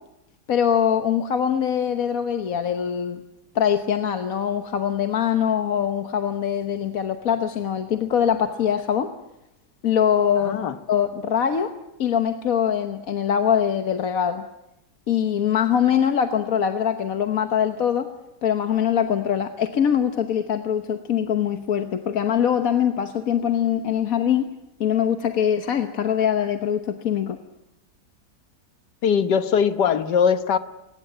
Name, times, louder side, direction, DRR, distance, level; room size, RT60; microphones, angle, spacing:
voice 1, 0.5-3.2 3.5-9.1 9.8-11.7 12.0-14.4 15.1-18.1 18.4-24.5 24.8-27.4, left 8 dB, 60° left, 1.4 m, -23 dB
voice 2, 10.4-10.8 29.0-30.6, left 7 dB, 80° left, 1.7 m, -20 dB
22.5 x 19.5 x 9.1 m
omnidirectional pair, 1.8 m